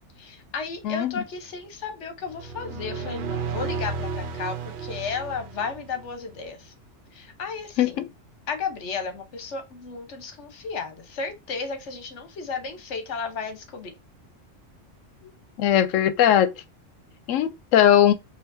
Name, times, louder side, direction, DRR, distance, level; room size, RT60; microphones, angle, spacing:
voice 1, 0.2-6.7 7.1-8.0 8.5-13.9, left 5 dB, 70° left, 1.2 m, -34 dB
voice 2, 0.8-1.2 7.8-8.1 15.6-16.5 17.3-18.1, left 10 dB, 85° left, 0.9 m, -19 dB
sound 1, 2.3-6.1, right 4 dB, 60° right, 0.6 m, -33 dB
5.0 x 2.7 x 2.6 m
omnidirectional pair, 1.3 m